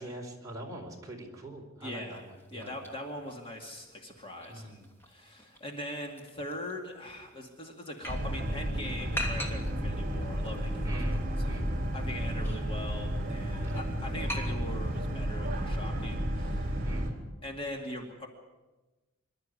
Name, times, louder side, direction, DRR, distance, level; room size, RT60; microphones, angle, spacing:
voice 1, 0.0-2.8 4.5-4.9 10.8-11.8 13.6-13.8 16.8-17.2, right 1 dB, 15° right, -1 dB, 4.4 m, -44 dB
voice 2, 1.8-2.2 2.5-4.8 5.1-11.6 11.9-16.8 17.4-18.3, left 1 dB, 25° left, 1 dB, 2.4 m, -41 dB
sound 1, 2.1-15.1, equal, 10° left, 2.8 m, -45 dB
Boat Water vehicle, 8.1-17.1, equal, 40° right, 3.8 m, -32 dB
26.5 x 12.5 x 9.8 m, 1.1 s
head